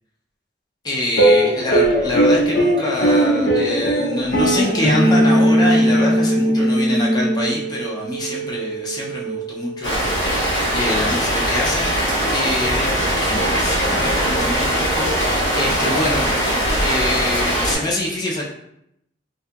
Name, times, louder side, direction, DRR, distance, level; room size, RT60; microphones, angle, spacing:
voice 1, 0.8-11.9 12.3-16.3 16.8-18.4, left 1 dB, 20° left, -3 dB, 0.4 m, -25 dB
sound 1, 1.1-7.7, equal, 60° left, 0.6 m, -17 dB
sound 2, 1.8-2.6 4.2-11.9, right 8 dB, 50° right, 0.4 m, -34 dB
Rain, 9.8-17.8, equal, 80° left, 1.0 m, -20 dB
2.7 x 2.6 x 2.2 m, 0.78 s
head